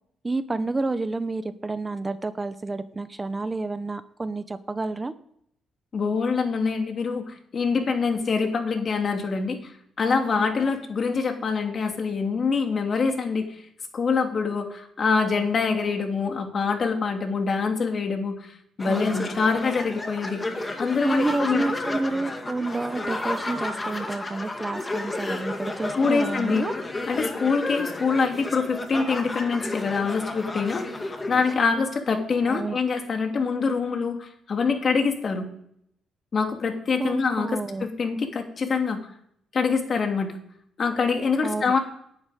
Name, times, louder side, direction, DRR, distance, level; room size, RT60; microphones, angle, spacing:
voice 1, 0.2-5.1 18.8-19.2 21.0-26.7 32.4-32.8 37.0-37.9 41.4-41.7, right 3 dB, 20° right, 12 dB, 0.9 m, -29 dB
voice 2, 5.9-9.6 10.0-13.5 13.9-21.6 25.9-26.6 27.1-30.9 31.3-35.5 36.3-39.0 39.5-40.3 40.8-41.8, left 5 dB, 45° left, 4 dB, 2.8 m, -25 dB
sound 1, 18.8-31.5, left 2 dB, 20° left, 2.2 m, -32 dB
11.0 x 8.7 x 9.3 m, 0.71 s
cardioid pair, 90°, 0 cm